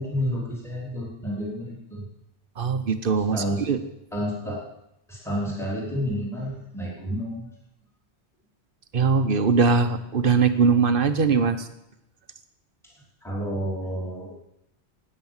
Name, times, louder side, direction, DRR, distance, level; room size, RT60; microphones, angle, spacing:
voice 1, 0.0-2.0 3.3-3.6 4.1-4.7 5.1-7.5 13.2-14.4, equal, ahead, -4 dB, 3.4 m, -30 dB
voice 2, 2.6-3.8 8.9-11.7, right 5 dB, 55° right, 9 dB, 1.1 m, -21 dB
12.5 x 9.5 x 7.2 m, 0.83 s
omnidirectional pair, 1.1 m